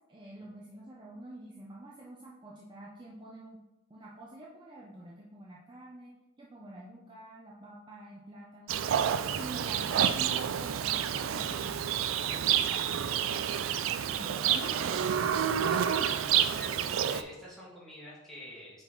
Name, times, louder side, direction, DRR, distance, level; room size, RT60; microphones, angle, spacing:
voice 1, 0.1-3.6 3.9-6.1 6.4-8.8 9.4-11.9 14.1-15.1, right 1 dB, 25° right, -4 dB, 0.6 m, -47 dB
Livestock farm animals working animals, 8.7-17.2, right 9 dB, 85° right, 0.4 m, -29 dB
voice 2, 9.5-9.8 12.3-13.4 13.8-14.2 15.6-18.8, equal, ahead, -8 dB, 1.9 m, -48 dB
5.5 x 4.1 x 4.5 m, 1.1 s
head